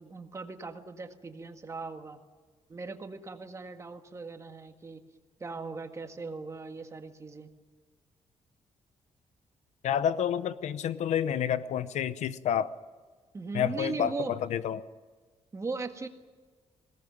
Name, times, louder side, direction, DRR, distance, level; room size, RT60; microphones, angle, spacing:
voice 1, 0.0-2.2 2.7-5.0 5.4-7.5 13.3-14.3 15.5-16.1, right 3 dB, 25° right, 1.8 m, -39 dB
voice 2, 9.8-12.7 13.5-14.8, left 9 dB, 85° left, 0.8 m, -29 dB
21.5 x 18.0 x 9.2 m
wide cardioid pair, 145°, 12 cm